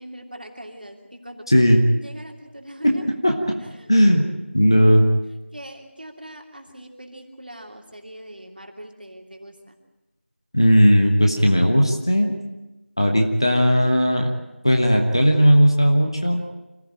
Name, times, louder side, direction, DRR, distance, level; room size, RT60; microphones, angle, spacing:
voice 1, 0.0-1.6 1.9-3.2 3.8-3.9 4.2-4.3 5.5-9.8 13.7-13.9, right 1 dB, 45° right, 3 dB, 2.9 m, -41 dB
voice 2, 1.5-1.8 2.8-3.5 3.9-4.2 4.5-5.0 10.5-12.4 13.0-14.3 14.6-16.4, equal, 20° left, 3 dB, 1.3 m, -17 dB
26.5 x 14.5 x 9.0 m, 1.0 s
figure-of-eight pair, 180°, 7 cm